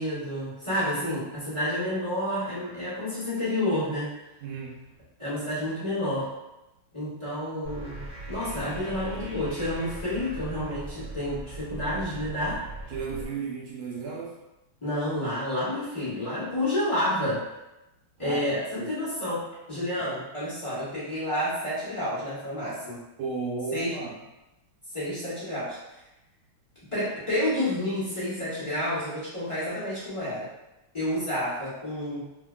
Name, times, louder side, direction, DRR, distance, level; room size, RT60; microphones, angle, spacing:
voice 1, 0.0-4.1 5.2-6.3 6.9-12.6 14.8-17.4 18.2-23.0 23.7-23.9 24.9-25.8 26.9-30.5 30.9-32.2, left 1 dB, 50° left, -13 dB, 0.3 m, -30 dB
voice 2, 4.4-4.8 12.9-14.3 18.2-18.4 18.8-18.9 20.0-20.1 23.2-24.2, right 4 dB, 85° right, -3 dB, 1.4 m, -34 dB
sound 1, 7.6-13.3, right 2 dB, 50° right, 1.1 m, -39 dB
3.3 x 2.2 x 2.2 m, 0.97 s
omnidirectional pair, 2.3 m